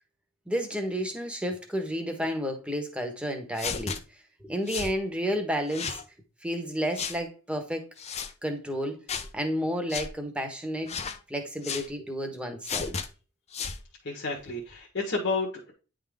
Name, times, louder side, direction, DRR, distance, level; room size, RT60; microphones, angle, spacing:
voice 1, 0.5-6.0 6.4-7.8 8.4-10.9 11.3-12.9, equal, 5° right, 3 dB, 1.2 m, -31 dB
sound 1, 3.6-4.0 4.7-4.9 5.7-6.0 6.9-7.2 8.0-8.3 9.1-9.3 9.9-10.1 10.9-11.2 11.6-11.9 12.6-13.1 13.5-13.8, left 6 dB, 30° left, 0.6 m, -33 dB
voice 2, 14.0-15.7, left 3 dB, 55° left, -1 dB, 1.4 m, -31 dB
9.7 x 3.8 x 3.6 m, 0.34 s
head